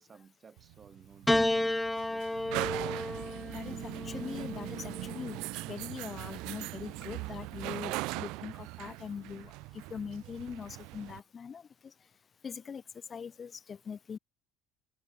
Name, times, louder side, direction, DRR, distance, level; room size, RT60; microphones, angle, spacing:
voice 1, 0.0-2.6, right 6 dB, 35° right, 7.1 m, -58 dB
sound 1, 0.6-11.2, right 23 dB, 65° right, 0.7 m, -40 dB
Piano, 1.3-5.8 6.8-7.5, left 1 dB, 10° left, 0.4 m, -33 dB
voice 2, 3.5-5.4 5.7-11.6 12.4-12.8 13.1-14.2, left 6 dB, 35° left, 1.9 m, -42 dB
open air
hypercardioid pair, 70°, 0 cm